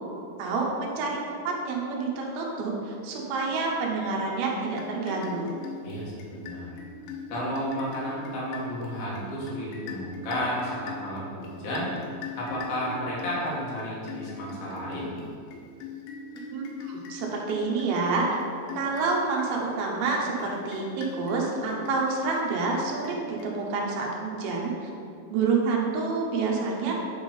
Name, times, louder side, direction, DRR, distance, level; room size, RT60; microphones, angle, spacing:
voice 1, 0.4-5.6 16.5-18.3 18.7-24.9 25.3-26.9, right 4 dB, 70° right, -1 dB, 2.5 m, -28 dB
sound 1, 4.7-23.9, left 5 dB, 90° left, 3.1 m, -41 dB
voice 2, 5.8-6.7 7.3-12.0 12.4-15.1, equal, 60° left, -6 dB, 3.2 m, -32 dB
8.9 x 3.6 x 5.3 m, 2.3 s
omnidirectional pair, 5.2 m